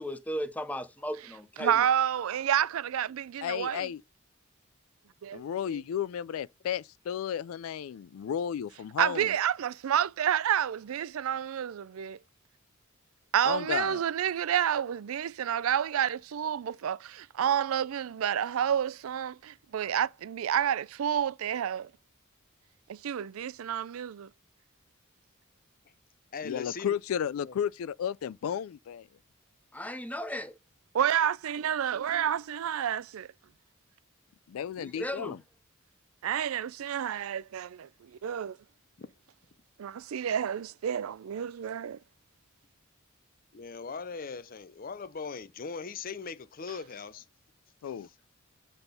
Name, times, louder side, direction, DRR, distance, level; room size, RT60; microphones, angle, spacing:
voice 1, 0.0-1.9 29.7-30.6 34.8-35.4, equal, 5° left, 0.7 m, -36 dB
voice 2, 1.6-3.9 5.2-5.8 9.0-12.2 13.3-21.9 22.9-24.3 30.9-33.3 36.2-38.6 39.8-42.0, right 9 dB, 90° right, 0.4 m, -29 dB
voice 3, 3.4-4.0 5.3-9.3 13.5-14.0 26.4-29.1 34.5-35.4 47.8-48.1, left 9 dB, 85° left, 0.3 m, -33 dB
voice 4, 26.3-26.9 27.4-27.5 39.0-39.1 43.5-47.3 47.8-48.1, left 5 dB, 45° left, 0.6 m, -40 dB
8.1 x 3.6 x 5.2 m
head